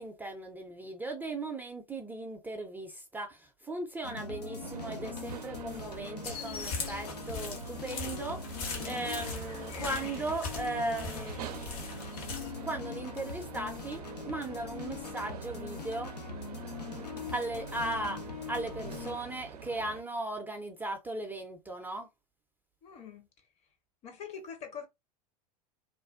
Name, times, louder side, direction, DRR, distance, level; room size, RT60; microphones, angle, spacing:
voice 1, 0.0-8.4 8.8-11.4 12.6-14.0 14.3-16.1 17.3-18.2 18.5-22.1, right 2 dB, 10° right, 0.4 m, -37 dB
sound 1, 4.0-19.2, left 5 dB, 85° left, 0.5 m, -42 dB
sound 2, 4.6-20.0, right 8 dB, 75° right, 0.4 m, -46 dB
sound 3, 6.2-12.5, left 4 dB, 65° left, 1.1 m, -40 dB
voice 2, 8.7-9.1 22.8-23.3 24.0-24.9, left 7 dB, 35° left, 0.7 m, -44 dB
2.5 x 2.2 x 2.4 m
figure-of-eight pair, 85°, 20 cm